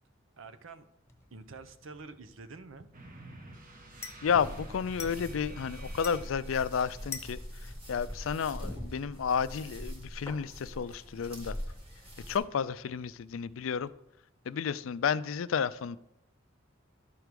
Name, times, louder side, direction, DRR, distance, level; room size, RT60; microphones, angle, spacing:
voice 1, 0.4-0.9 1.3-2.9, right 4 dB, 85° right, 0.7 m, -47 dB
sound 1, 1.1-13.9, left 5 dB, 15° left, 1.0 m, -51 dB
sound 2, 2.9-6.8, right 2 dB, 45° right, 1.2 m, -50 dB
voice 2, 4.2-11.6 12.3-13.9 14.4-16.0, left 7 dB, 80° left, 0.4 m, -32 dB
sound 3, 4.3-12.4, equal, 30° right, 2.1 m, -43 dB
12.5 x 4.7 x 5.2 m
head